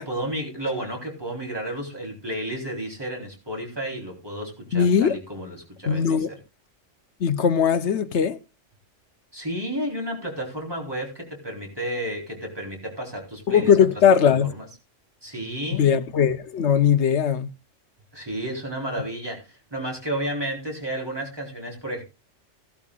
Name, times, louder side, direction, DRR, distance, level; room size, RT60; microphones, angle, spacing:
voice 1, 0.0-6.4 9.3-13.8 14.5-14.7 15.2-15.9 18.1-22.0, right 1 dB, 20° right, 4.0 m, -32 dB
voice 2, 4.7-5.2 5.9-6.3 7.2-8.4 13.5-14.5 15.8-17.5, left 7 dB, 65° left, 1.0 m, -19 dB
16.5 x 12.0 x 2.4 m
omnidirectional pair, 1.3 m